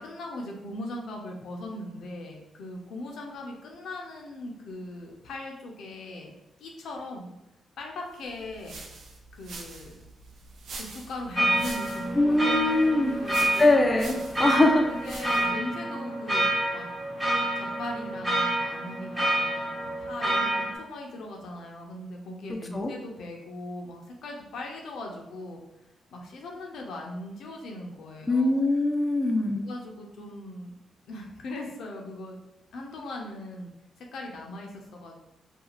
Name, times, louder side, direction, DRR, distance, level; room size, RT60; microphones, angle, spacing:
voice 1, 0.0-6.3 6.6-7.3 7.8-8.8 9.3-10.0 10.7-13.7 14.9-16.9 17.6-25.6 26.1-28.7 29.6-30.7 31.1-32.4 32.7-33.7 34.0-35.2, left 1 dB, 80° left, 0 dB, 0.5 m, -39 dB
sound 1, 8.2-15.6, right 3 dB, 70° right, 0.5 m, -45 dB
sound 2, 11.4-20.8, right 1 dB, 10° right, 0.9 m, -28 dB
voice 2, 12.2-13.2 13.6-14.8 22.5-22.9 28.3-29.7, left 2 dB, 20° left, 2 dB, 0.4 m, -22 dB
2.5 x 2.3 x 2.9 m, 0.91 s
cardioid pair, 80°, 0 cm